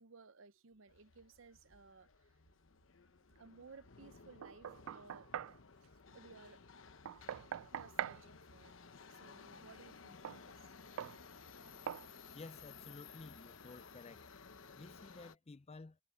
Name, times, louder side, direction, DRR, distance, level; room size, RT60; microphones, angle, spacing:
voice 1, 0.0-2.4 3.4-5.3 6.1-6.6 7.7-8.7 9.1-10.6, right 4 dB, 70° right, 0.8 m, -59 dB
Subway metro underground, 0.9-15.3, left 5 dB, 70° left, 1.1 m, -57 dB
Knock, 4.4-5.6 7.1-8.2 10.2-10.4 11.0-11.2 11.9-12.1, right 9 dB, 90° right, 0.3 m, -42 dB
sound 1, 7.3-12.4, right 4 dB, 50° right, 3.2 m, -76 dB
voice 2, 12.3-14.2 14.7-16.0, left 3 dB, 30° left, 0.5 m, -53 dB
head